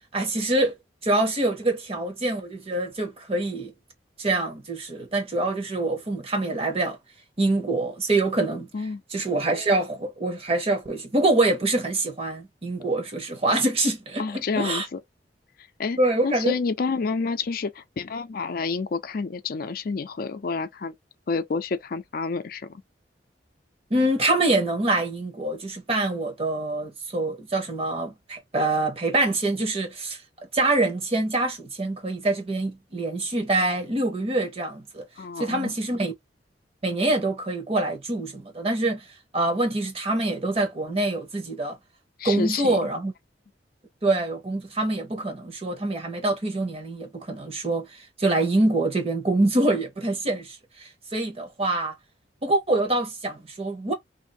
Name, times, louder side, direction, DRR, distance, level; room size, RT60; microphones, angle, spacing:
voice 1, 0.1-0.7 1.0-3.7 4.2-7.0 7.4-8.7 9.1-14.9 16.0-16.5 23.9-30.2 30.5-35.0 35.4-36.1 36.8-39.0 39.3-41.8 42.2-43.1 44.0-51.9 52.4-53.9, right 2 dB, 35° right, 1.0 m, -25 dB
voice 2, 14.2-15.0 15.8-16.0 16.2-20.9 21.3-22.8 35.2-35.7 42.2-42.8, left 4 dB, 55° left, 0.4 m, -29 dB
2.6 x 2.5 x 3.8 m
head